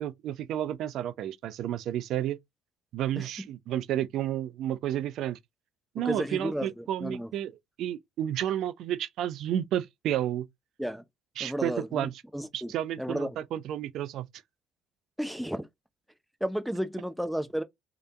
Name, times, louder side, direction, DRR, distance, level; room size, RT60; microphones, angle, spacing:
voice 1, 0.0-2.4 2.9-5.4 5.9-7.5 7.8-10.5 11.4-12.1 12.5-14.3, right 11 dB, 65° right, 0.5 m, -31 dB
voice 2, 3.2-3.5 6.0-7.3 10.8-11.0 11.4-12.7 13.0-13.3 15.2-15.7 16.4-17.6, equal, ahead, 0.8 m, -33 dB
3.3 x 2.9 x 3.7 m
supercardioid pair, 75°, 0 cm